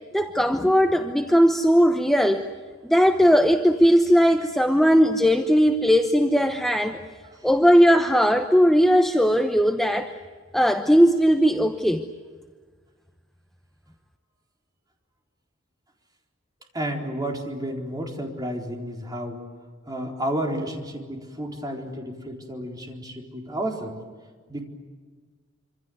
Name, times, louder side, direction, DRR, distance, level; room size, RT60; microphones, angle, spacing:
voice 1, 0.1-2.4 2.8-7.0 7.4-10.1 10.5-12.1, equal, ahead, 5 dB, 0.9 m, -18 dB
voice 2, 16.7-19.4 19.9-24.0 24.5-24.6, right 1 dB, 20° right, 1 dB, 4.1 m, -31 dB
26.5 x 26.0 x 7.9 m, 1.5 s
head